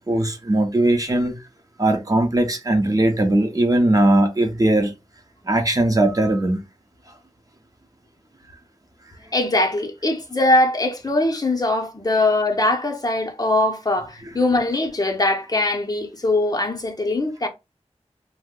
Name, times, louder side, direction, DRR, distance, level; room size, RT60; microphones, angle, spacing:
voice 1, 0.1-1.4 1.8-4.9 5.5-6.6, right 1 dB, 30° right, 0.7 m, -19 dB
voice 2, 9.3-17.5, left 2 dB, 35° left, 0.7 m, -21 dB
2.6 x 2.1 x 3.6 m
wide cardioid pair, 60°, 12 cm